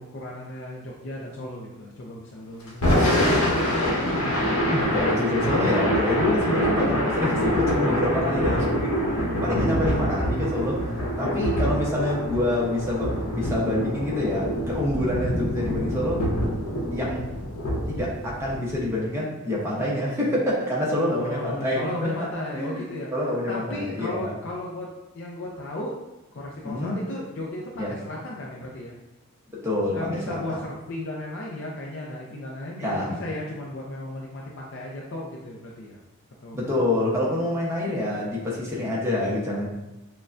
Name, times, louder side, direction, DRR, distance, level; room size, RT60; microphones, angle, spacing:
voice 1, 0.0-3.0 6.3-6.5 8.1-8.6 9.4-9.8 11.1-11.6 14.7-14.9 21.1-23.1 23.5-26.0 26.3-29.0 29.9-36.0 36.4-36.6, left 1 dB, 55° left, -3 dB, 0.5 m, -35 dB
Thunder / Rain, 2.7-18.9, equal, 90° left, 1.0 m, -25 dB
voice 2, 4.3-8.8 9.4-10.9 11.2-16.3 16.9-17.3 17.9-22.3 22.6-22.8 23.1-24.4 26.6-27.0 27.8-28.0 29.5-30.6 32.8-33.2 36.5-39.7, left 1 dB, 10° right, -5 dB, 0.8 m, -26 dB
6.3 x 2.2 x 2.5 m, 0.99 s
head